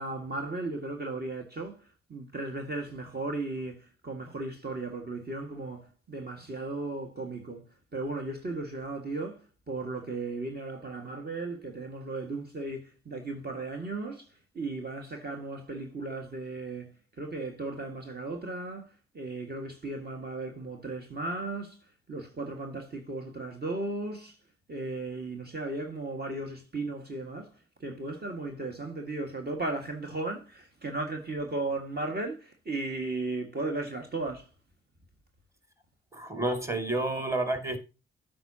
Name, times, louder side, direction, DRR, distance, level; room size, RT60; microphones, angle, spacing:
voice 1, 0.0-7.7 7.9-24.4 24.7-27.5 27.8-34.5, right 2 dB, 35° right, 1.8 m, -36 dB
voice 2, 36.1-37.8, right 2 dB, 10° right, 2.3 m, -30 dB
14.0 x 5.2 x 2.8 m
hypercardioid pair, 40°, 29 cm